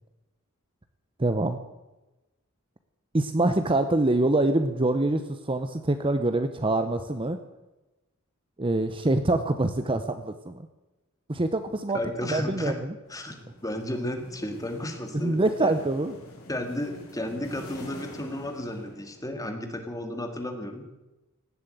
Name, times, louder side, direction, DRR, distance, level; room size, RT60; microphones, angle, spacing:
voice 1, 1.2-1.6 3.1-7.4 8.6-10.7 11.3-12.0 12.3-12.9 15.2-16.1, right 2 dB, 25° right, 9 dB, 0.7 m, -25 dB
voice 2, 11.9-12.8 13.1-13.4 13.6-15.8 16.5-20.9, left 1 dB, 15° left, 5 dB, 2.0 m, -33 dB
sound 1, 13.0-19.5, equal, 70° left, 4.9 m, -46 dB
17.5 x 7.6 x 9.1 m, 1.0 s
head